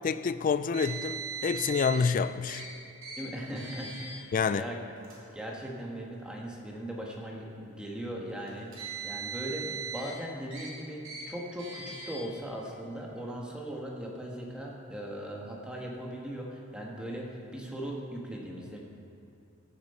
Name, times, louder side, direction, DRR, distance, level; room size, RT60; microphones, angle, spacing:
voice 1, 0.0-2.6 4.3-4.7, left 5 dB, 40° left, 0.3 m, -28 dB
Car, 0.7-2.1 2.5-2.6 3.0-3.2 3.6-4.1 5.0-5.1 6.1-6.2 8.5-10.1 10.5-10.7 11.0-11.2 11.6-12.2, right 6 dB, 65° right, 2.9 m, -39 dB
voice 2, 3.2-4.8 5.3-18.8, equal, 5° right, 1.4 m, -39 dB
15.0 x 7.3 x 4.4 m
head